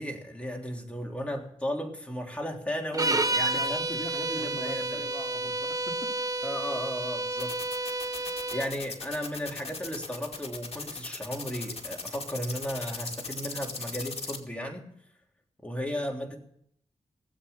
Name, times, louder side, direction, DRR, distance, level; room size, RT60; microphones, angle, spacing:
voice 1, 0.0-3.8 4.3-5.0 6.4-14.9 15.6-16.4, equal, 10° left, 1 dB, 3.5 m, -35 dB
sound 1, 2.9-8.7, right 2 dB, 30° right, 1.1 m, -30 dB
voice 2, 3.5-6.3, left 2 dB, 35° left, 1 dB, 3.3 m, -42 dB
sound 2, 7.4-14.4, left 4 dB, 55° left, 2.4 m, -38 dB
18.5 x 8.1 x 8.6 m, 0.69 s
cardioid pair, 65°, 12 cm